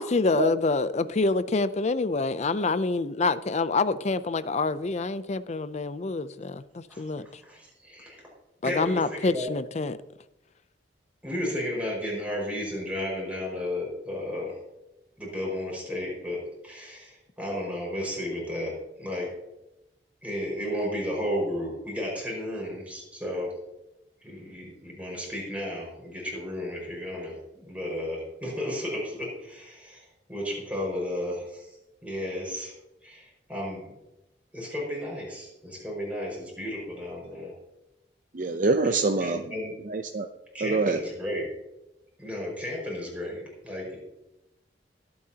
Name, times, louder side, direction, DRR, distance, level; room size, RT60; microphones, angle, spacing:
voice 1, 0.0-7.3 8.6-10.0, left 3 dB, 40° left, 14 dB, 0.5 m, -26 dB
voice 2, 7.4-8.2 8.6-9.5 11.2-14.6 15.2-19.3 20.2-23.5 24.2-31.7 32.0-32.7 33.0-33.9 34.5-37.5 39.2-39.7 40.5-41.5 42.2-44.0, left 1 dB, 10° right, -3 dB, 5.3 m, -33 dB
voice 3, 38.3-39.5 39.8-40.3 40.6-41.0, right 3 dB, 45° right, 6 dB, 0.6 m, -25 dB
23.0 x 8.7 x 2.9 m, 0.94 s
head